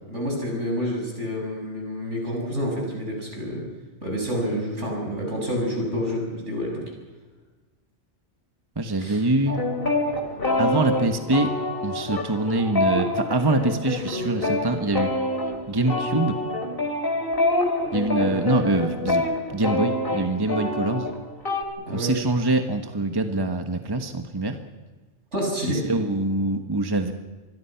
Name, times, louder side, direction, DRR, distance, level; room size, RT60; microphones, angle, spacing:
voice 1, 0.1-3.7 4.0-6.8 9.0-9.2 18.2-18.5 21.9-22.1 25.3-25.8, equal, 75° right, 0 dB, 7.7 m, -28 dB
voice 2, 8.8-9.7 10.6-11.5 11.8-15.1 15.7-16.4 17.9-19.3 19.5-21.1 21.9-24.6 25.8-27.1, right 2 dB, 20° right, 6 dB, 1.4 m, -24 dB
sound 1, 9.5-21.6, left 2 dB, 50° left, 2.9 m, -26 dB
26.5 x 22.0 x 5.9 m, 1.3 s
omnidirectional pair, 1.2 m